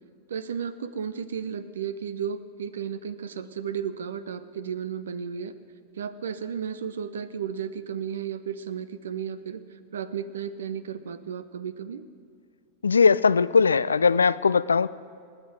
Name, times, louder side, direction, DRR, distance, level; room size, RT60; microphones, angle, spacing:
voice 1, 0.3-5.5 5.9-9.6 9.9-12.0, right 7 dB, 65° right, 15 dB, 0.7 m, -33 dB
voice 2, 12.8-14.9, left 5 dB, 75° left, 18 dB, 0.3 m, -20 dB
28.0 x 9.9 x 4.7 m, 2.2 s
figure-of-eight pair, 90°, 0 cm